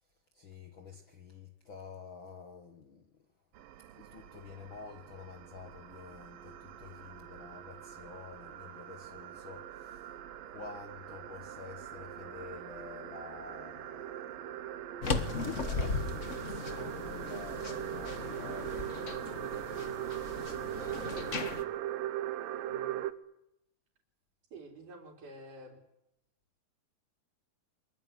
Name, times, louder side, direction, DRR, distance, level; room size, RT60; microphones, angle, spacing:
voice 1, 0.3-3.3 3.8-10.1 10.4-14.5 15.4-19.5 20.6-21.8, left 5 dB, 50° left, 1.7 m, -50 dB
sound 1, 3.5-23.1, right 12 dB, 75° right, 2.8 m, -41 dB
sound 2, 15.0-21.6, left 4 dB, 75° left, 0.6 m, -37 dB
voice 2, 22.6-23.0 24.5-25.8, right 1 dB, 60° right, 5.1 m, -49 dB
24.5 x 22.5 x 9.5 m
omnidirectional pair, 4.1 m